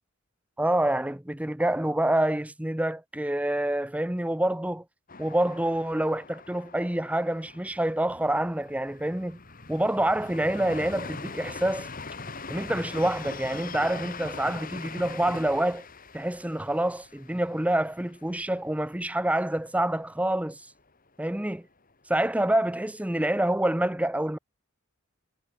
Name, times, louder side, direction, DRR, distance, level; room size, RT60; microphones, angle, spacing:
voice 1, 0.6-4.8 5.2-9.4 9.7-11.9 12.5-15.9 16.1-20.6 21.2-21.7 22.1-24.4, right 1 dB, 5° right, 0.7 m, -27 dB
sound 1, 5.1-18.8 19.1-19.2 19.6-20.2, left 4 dB, 40° left, 3.9 m, -42 dB
head